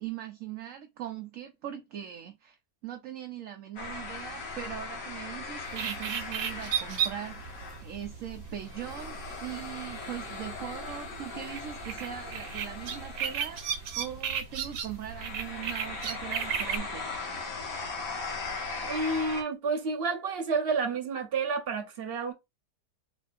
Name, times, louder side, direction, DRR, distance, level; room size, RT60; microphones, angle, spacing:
voice 1, 0.0-2.6 2.8-17.1, right 11 dB, 65° right, 0.8 m, -40 dB
sound 1, 3.8-19.4, left 3 dB, 75° left, 2.1 m, -39 dB
sound 2, 5.7-16.8, right 8 dB, 85° right, 1.3 m, -35 dB
voice 2, 18.8-22.3, right 4 dB, 40° right, 1.0 m, -30 dB
4.0 x 3.1 x 2.5 m
omnidirectional pair, 1.8 m